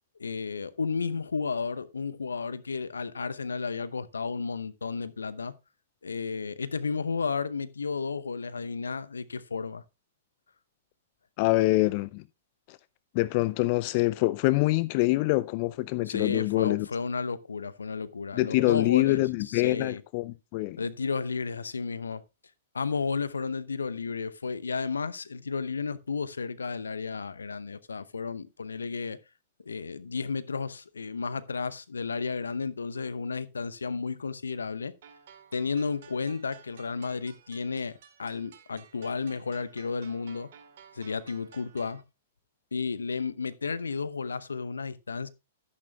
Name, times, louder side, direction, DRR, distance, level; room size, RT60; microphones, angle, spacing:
voice 1, 0.2-5.5 6.0-9.8 16.1-20.0 20.8-22.2 22.7-29.2 29.6-34.9 35.5-40.5 40.9-42.0 42.7-45.3, left 5 dB, 80° left, 0.8 m, -33 dB
voice 2, 11.4-12.2 12.7-12.8 13.1-16.9 18.3-20.8, left 20 dB, 45° left, 0.4 m, -25 dB
sound 1, 35.0-42.0, right 7 dB, 55° right, 2.2 m, -54 dB
12.0 x 11.0 x 2.3 m
figure-of-eight pair, 110°, 0 cm